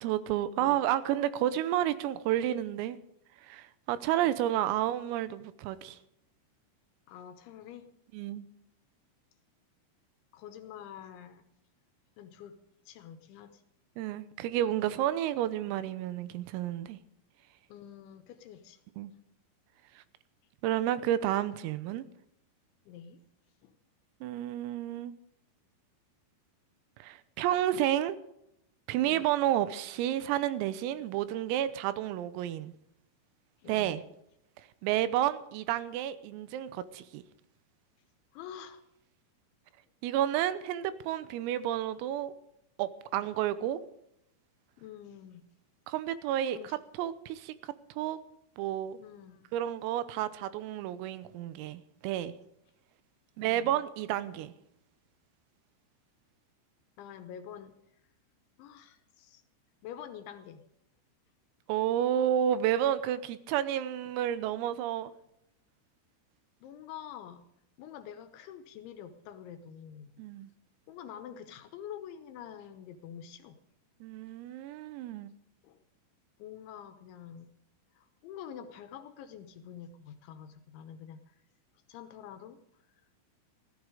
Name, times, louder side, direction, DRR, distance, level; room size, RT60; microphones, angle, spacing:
voice 1, 0.0-3.0 3.4-6.0 8.1-8.5 14.0-17.0 19.0-19.1 20.0-20.1 20.6-22.1 24.2-25.1 27.0-28.2 28.9-32.7 33.7-34.0 34.8-37.2 40.0-42.3 42.8-43.8 45.9-46.6 47.0-48.2 48.6-49.0 49.5-52.3 53.4-54.5 61.7-65.1 70.2-70.5 74.0-75.3, right 12 dB, 90° right, 3.6 m, -31 dB
voice 2, 0.6-1.0 4.2-4.7 7.1-7.9 10.3-11.4 12.2-12.6 12.9-13.6 17.7-18.8 22.9-23.2 23.6-23.8 29.0-29.3 33.6-33.9 38.3-38.8 44.8-45.5 46.6-46.8 49.0-49.5 53.4-53.8 57.0-57.8 58.6-59.4 59.8-60.7 66.6-67.4 67.8-70.2 70.9-73.6 75.6-75.8 76.4-77.5 77.9-81.4 81.9-82.6, left 9 dB, 80° left, 3.0 m, -47 dB
15.0 x 14.0 x 4.9 m
omnidirectional pair, 6.0 m